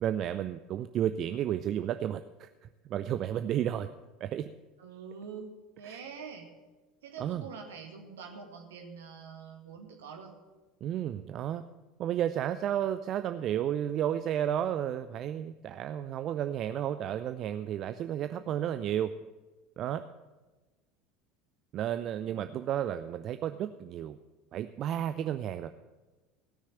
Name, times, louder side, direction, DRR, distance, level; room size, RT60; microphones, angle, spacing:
voice 1, 0.0-3.9 4.2-4.5 5.8-6.0 7.2-7.4 10.8-11.6 12.0-19.1 19.8-20.0 21.7-24.2 24.5-25.7, right 10 dB, 40° right, 10 dB, 0.5 m, -32 dB
voice 2, 4.8-5.5 5.8-6.5 7.0-10.3, right 6 dB, 70° right, 2 dB, 2.1 m, -45 dB
17.5 x 6.5 x 7.7 m, 1.2 s
figure-of-eight pair, 70°, 0 cm